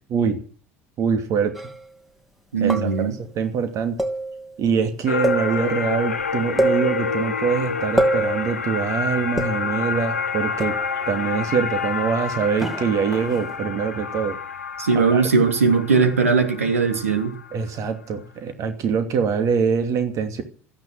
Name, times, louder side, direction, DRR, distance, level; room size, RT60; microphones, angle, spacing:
voice 1, 1.0-1.5 2.6-3.1 3.3-4.0 4.6-10.8 11.1-14.4 14.9-15.3 17.5-20.4, right 6 dB, 45° right, 7 dB, 2.7 m, -24 dB
sound 1, 1.5-1.8 2.7-3.2 4.0-4.6 5.2-5.9 6.2-6.3 6.6-7.4 8.0-8.6 9.4-9.9 10.6-11.1 12.6-13.6, right 1 dB, 5° right, 2.6 m, -25 dB
voice 2, 2.5-3.1 14.8-17.4, right 5 dB, 80° right, 6 dB, 2.9 m, -19 dB
sound 2, 5.1-17.7, left 5 dB, 85° left, 1.1 m, -28 dB
14.5 x 11.0 x 9.2 m, 0.41 s
figure-of-eight pair, 65°, 7 cm